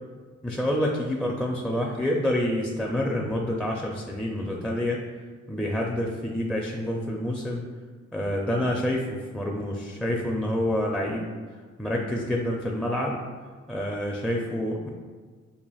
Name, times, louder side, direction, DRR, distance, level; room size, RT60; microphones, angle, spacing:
voice 1, 0.4-5.0 5.5-7.6 8.1-11.3 11.8-13.2 13.7-14.9, left 1 dB, 5° left, -1 dB, 0.4 m, -27 dB
5.5 x 2.4 x 2.3 m, 1.5 s
cardioid pair, 65°, 31 cm